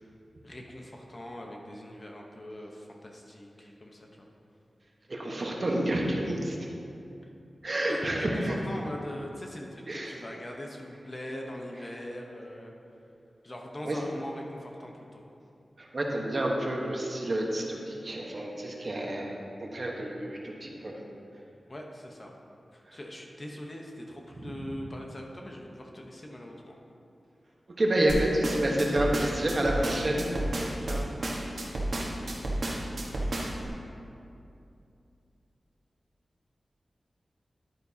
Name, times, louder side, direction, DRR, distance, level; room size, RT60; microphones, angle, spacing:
voice 1, 0.4-4.3 7.9-12.7 13.4-15.2 21.7-22.3 22.7-26.7 30.8-31.1, left 1 dB, 30° left, 0 dB, 0.9 m, -41 dB
voice 2, 5.1-6.7 7.6-8.6 9.9-10.2 13.8-14.0 15.8-21.0 22.9-23.0 24.4-24.5 27.8-30.3, right 1 dB, 45° right, -1 dB, 1.1 m, -29 dB
sound 1, 28.1-33.7, right 1 dB, 60° right, 1.4 m, -31 dB
11.0 x 8.9 x 2.8 m, 2.7 s
wide cardioid pair, 110°, 0 cm